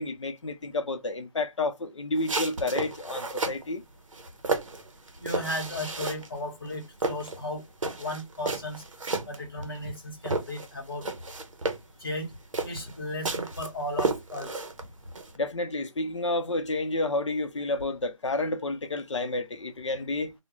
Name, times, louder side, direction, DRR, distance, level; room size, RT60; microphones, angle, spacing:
voice 1, 0.0-3.8 15.4-20.3, left 2 dB, 60° left, 0.6 m, -30 dB
sound 1, 2.2-3.6 4.1-6.4 6.7-10.0 10.2-15.4, right 3 dB, 70° right, 0.7 m, -32 dB
voice 2, 5.2-8.8 9.3-11.1 12.0-12.3 12.6-14.5, left 1 dB, 45° left, 0.9 m, -35 dB
2.3 x 2.1 x 2.8 m
figure-of-eight pair, 175°, 17 cm